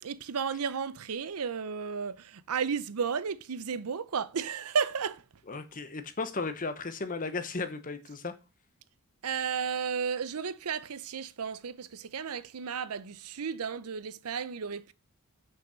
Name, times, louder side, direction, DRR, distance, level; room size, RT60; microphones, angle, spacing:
voice 1, 0.0-5.2 9.2-14.9, right 6 dB, 90° right, 0.6 m, -33 dB
voice 2, 5.5-8.3, left 3 dB, 40° left, 1.0 m, -35 dB
6.0 x 5.7 x 6.4 m
head